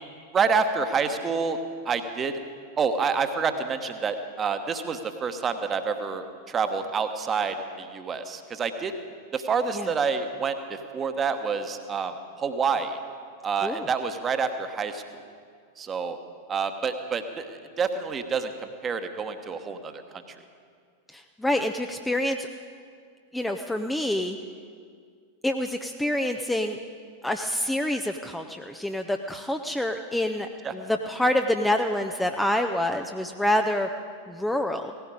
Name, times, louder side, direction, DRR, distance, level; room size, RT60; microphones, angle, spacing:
voice 1, 0.3-1.6 1.8-2.4 2.8-8.9 9.3-13.0 13.4-15.0 15.8-16.2 16.5-20.0 30.6-30.7, right 5 dB, 20° right, 8 dB, 1.1 m, -28 dB
voice 2, 21.1-22.5 23.3-24.4 25.4-26.8 27.2-33.9 34.3-34.9, left 1 dB, 5° left, 5 dB, 0.6 m, -27 dB
18.0 x 15.5 x 4.9 m, 2.1 s
figure-of-eight pair, 90°, 0 cm